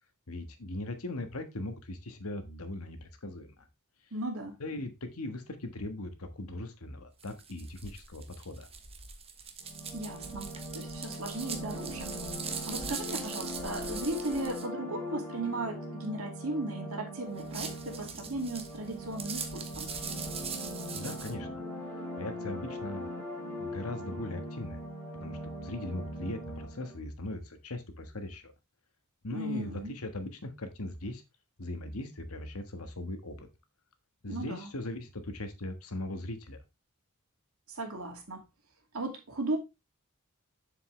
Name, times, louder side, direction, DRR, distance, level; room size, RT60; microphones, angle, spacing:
voice 1, 0.3-3.7 4.6-8.7 20.9-21.6 21.9-23.0 23.6-24.8 25.1-28.5 29.2-31.2 31.6-33.5 34.2-36.6, left 2 dB, 90° left, 1.4 m, -39 dB
voice 2, 4.1-4.6 9.9-12.1 12.7-19.9 29.3-29.9 34.3-34.7 37.7-38.4 38.9-39.6, right 2 dB, 75° right, 2.4 m, -36 dB
sound 1, 7.2-14.7 17.3-21.3, right 6 dB, 30° right, 1.2 m, -41 dB
sound 2, 9.6-27.0, equal, 10° left, 4.2 m, -40 dB
7.3 x 6.8 x 3.2 m
head